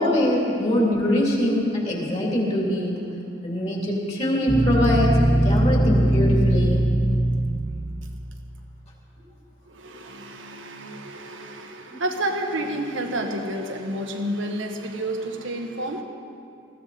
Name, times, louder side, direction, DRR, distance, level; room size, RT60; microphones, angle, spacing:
voice 1, 0.0-3.0 3.4-6.8, left 1 dB, 35° left, -2 dB, 3.0 m, -23 dB
sound 1, 4.5-7.9, right 1 dB, ahead, 1.4 m, -20 dB
voice 2, 9.7-16.0, right 1 dB, 85° right, 3 dB, 1.6 m, -30 dB
20.0 x 15.0 x 4.2 m, 2.4 s
head